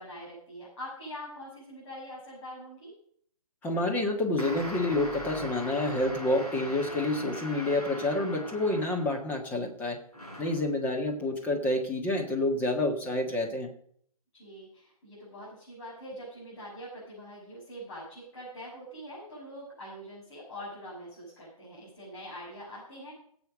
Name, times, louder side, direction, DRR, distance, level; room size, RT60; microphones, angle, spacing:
voice 1, 0.0-2.9 14.3-23.1, equal, 45° left, -7 dB, 6.6 m, -44 dB
voice 2, 3.6-10.0 10.4-13.7, left 2 dB, 10° left, 2 dB, 1.6 m, -28 dB
sound 1, 4.4-9.4 10.1-10.7, equal, 90° left, 4.9 m, -40 dB
16.5 x 8.1 x 5.1 m, 0.63 s
figure-of-eight pair, 135°, 19 cm